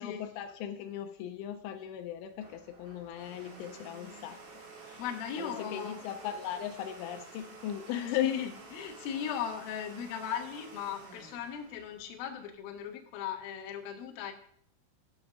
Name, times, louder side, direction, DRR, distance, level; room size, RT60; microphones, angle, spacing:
voice 1, 0.0-4.4 4.9-5.0 5.4-8.3, left 10 dB, 85° left, 8 dB, 3.2 m, -38 dB
Domestic sounds home sounds, 2.0-12.7, right 3 dB, 75° right, 1.0 m, -51 dB
voice 2, 5.0-6.0 8.2-14.3, left 8 dB, 70° left, 4 dB, 2.5 m, -37 dB
9.1 x 6.1 x 6.1 m, 0.63 s
omnidirectional pair, 5.6 m